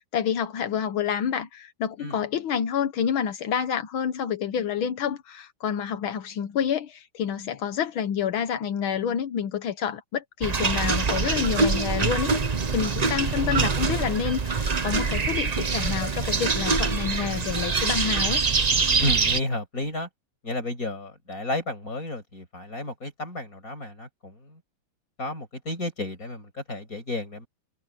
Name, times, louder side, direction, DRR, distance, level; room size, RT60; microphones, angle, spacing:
voice 1, 0.0-12.3 12.7-18.4, left 8 dB, 80° left, 1.9 m, -28 dB
sound 1, 10.4-19.4, right 4 dB, 70° right, 0.3 m, -24 dB
voice 2, 19.0-20.1 20.4-24.6 25.2-27.5, left 2 dB, 40° left, 7.1 m, -32 dB
omnidirectional pair, 2.3 m